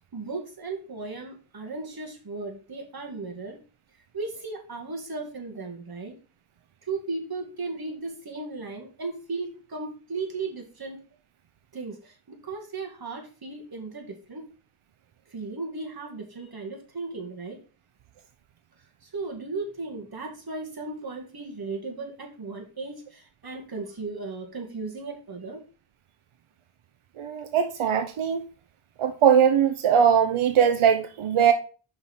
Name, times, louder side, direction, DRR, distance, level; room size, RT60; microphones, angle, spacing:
voice 1, 0.1-3.6 4.1-6.2 6.8-11.0 11.7-14.5 15.3-17.6 19.0-25.6, right 3 dB, 50° right, 2.2 m, -36 dB
voice 2, 27.2-28.4 29.0-31.5, right 8 dB, 90° right, 0.7 m, -21 dB
5.6 x 4.8 x 5.5 m
wide cardioid pair, 80°, 48 cm